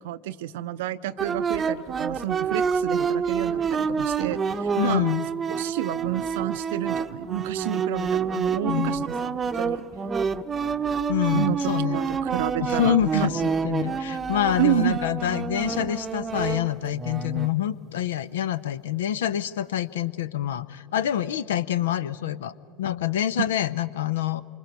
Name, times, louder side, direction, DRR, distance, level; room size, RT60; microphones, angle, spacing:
voice 1, 0.0-5.1 5.5-9.9 11.3-13.4 14.6-15.0, right 14 dB, 65° right, 15 dB, 0.6 m, -30 dB
sound 1, 1.2-17.5, right 6 dB, 25° right, 0.8 m, -28 dB
voice 2, 4.7-5.3 8.6-9.0 11.1-12.0 12.6-13.3 13.6-24.4, left 11 dB, 70° left, 17 dB, 0.6 m, -26 dB
27.0 x 24.5 x 5.3 m, 2.4 s
figure-of-eight pair, 75°, 0 cm